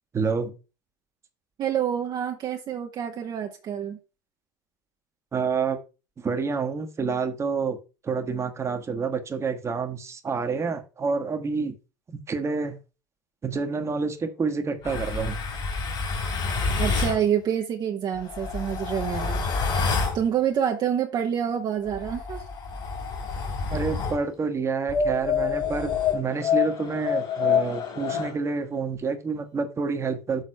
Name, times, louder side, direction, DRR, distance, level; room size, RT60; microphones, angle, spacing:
voice 1, 0.1-0.5 5.3-5.8 6.2-7.8 8.0-11.7 12.1-12.8 13.4-15.4 23.7-30.4, right 5 dB, 25° right, 6 dB, 1.3 m, -28 dB
voice 2, 1.6-4.0 16.8-19.5 20.1-22.4, right 9 dB, 45° right, 2 dB, 1.1 m, -27 dB
sound 1, 14.8-17.2 18.2-20.2 21.9-24.2 24.9-28.3, left 5 dB, 45° left, 3.1 m, -27 dB
6.6 x 4.0 x 5.6 m, 0.31 s
hypercardioid pair, 75°, 10 cm